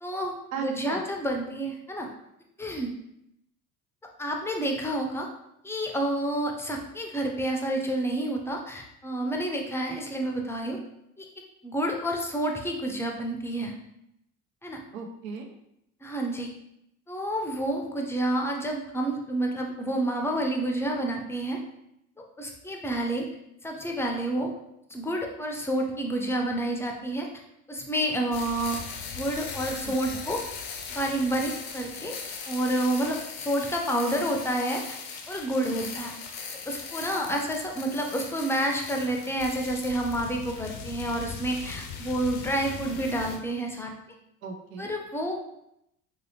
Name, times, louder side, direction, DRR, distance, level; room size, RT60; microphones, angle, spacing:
voice 1, 0.0-2.1 2.6-2.9 4.2-5.3 5.6-10.8 11.6-13.7 14.6-14.8 16.0-16.5 17.1-21.6 22.4-23.3 23.6-24.5 24.9-27.3 27.7-28.8 29.1-30.4 30.9-32.1 32.5-35.0 35.3-36.1 36.7-43.9 44.8-45.6, right 1 dB, 5° left, 1 dB, 0.5 m, -29 dB
voice 2, 0.5-1.1 14.9-15.6 29.8-30.3 44.4-44.9, right 6 dB, 85° right, 3 dB, 0.6 m, -37 dB
sound 1, 28.3-43.4, left 6 dB, 60° left, 0.6 m, -39 dB
3.0 x 2.7 x 2.7 m, 0.80 s
hypercardioid pair, 55°, 40 cm